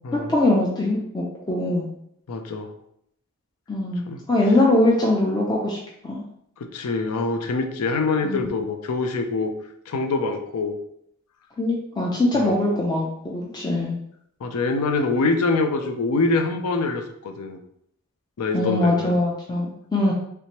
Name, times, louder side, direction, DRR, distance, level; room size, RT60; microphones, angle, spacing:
voice 1, 0.3-1.9 3.7-5.8 6.0-6.2 8.2-8.4 11.6-14.0 18.5-20.1, left 2 dB, 20° left, -3 dB, 0.4 m, -22 dB
voice 2, 2.3-2.7 4.1-4.2 6.6-9.5 9.9-10.8 12.3-12.6 14.4-17.6 18.4-19.2, left 3 dB, 90° left, 6 dB, 0.4 m, -25 dB
3.2 x 3.0 x 2.9 m, 0.72 s
head